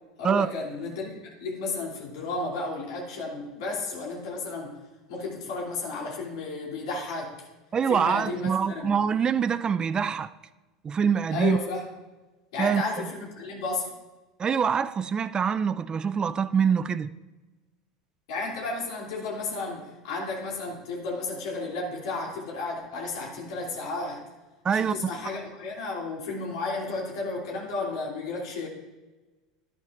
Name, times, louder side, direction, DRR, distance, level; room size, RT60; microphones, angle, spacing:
voice 1, 0.2-4.7 5.1-7.3 7.9-9.0 11.3-11.8 12.5-13.9 18.3-24.2 24.7-28.7, left 3 dB, 70° left, 2.9 m, -33 dB
voice 2, 7.7-10.3 10.8-11.6 12.6-13.1 14.4-17.1 24.6-24.9, right 7 dB, 25° right, 0.4 m, -25 dB
11.5 x 10.5 x 2.5 m
hypercardioid pair, 80°, 3 cm